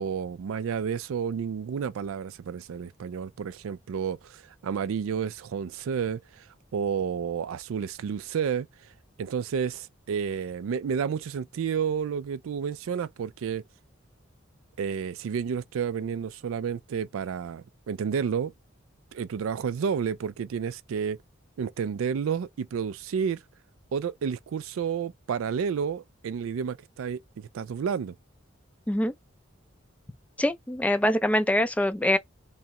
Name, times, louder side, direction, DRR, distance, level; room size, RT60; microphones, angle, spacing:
voice 1, 0.0-6.5 6.7-8.7 9.2-13.6 14.8-18.5 19.1-21.2 21.6-23.4 23.9-28.1, right 7 dB, 80° right, 0.4 m, -30 dB
voice 2, 30.4-32.2, left 1 dB, 5° left, 0.4 m, -24 dB
3.1 x 2.9 x 3.6 m
head